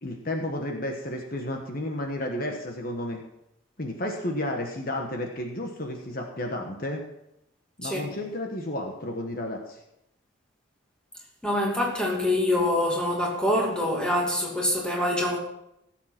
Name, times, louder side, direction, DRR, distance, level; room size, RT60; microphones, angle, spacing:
voice 1, 0.0-3.2 3.8-7.0 7.8-9.8, left 1 dB, 45° left, 1.3 m, -32 dB
voice 2, 11.4-15.4, left 1 dB, 5° left, 2.5 m, -25 dB
16.5 x 7.6 x 5.9 m
head